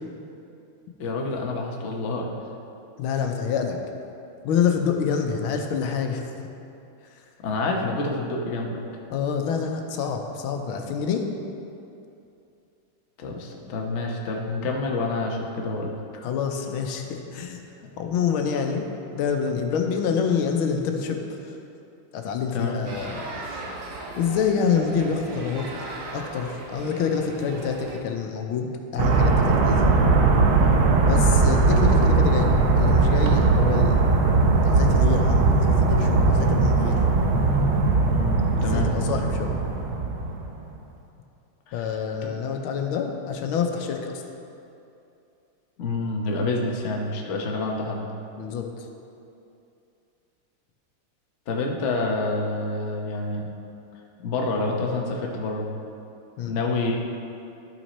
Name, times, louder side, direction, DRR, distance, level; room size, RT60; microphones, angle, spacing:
voice 1, 1.0-2.3 7.4-8.8 13.2-15.9 22.5-22.8 31.1-31.3 38.1-38.9 41.7-42.0 45.8-48.0 51.5-53.5 54.2-55.7 56.5-57.0, left 2 dB, 50° left, 0 dB, 0.9 m, -27 dB
voice 2, 3.0-3.8 4.4-6.5 9.1-11.2 16.1-17.6 18.0-18.8 19.1-21.5 22.1-23.2 23.5-23.6 24.2-25.8 26.1-29.9 31.0-34.1 34.6-37.0 38.6-39.6 41.7-44.2 48.4-48.9 56.4-56.6, left 6 dB, 90° left, 4 dB, 1.6 m, -27 dB
sound 1, 22.8-28.0, right 2 dB, 60° right, 1.4 m, -37 dB
sound 2, 29.0-40.6, right 3 dB, 80° right, 1.6 m, -19 dB
11.0 x 6.0 x 4.1 m, 2.7 s
omnidirectional pair, 2.2 m